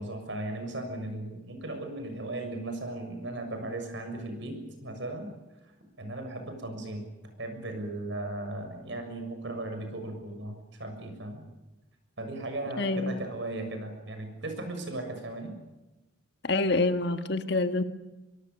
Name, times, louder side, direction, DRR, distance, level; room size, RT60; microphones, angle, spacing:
voice 1, 0.0-5.3 6.0-7.0 7.4-11.4 12.2-15.5, right 2 dB, 65° right, 6 dB, 6.8 m, -37 dB
voice 2, 12.8-13.2 16.4-17.8, left 2 dB, 55° left, 8 dB, 1.7 m, -26 dB
24.5 x 23.0 x 7.1 m, 1.0 s
head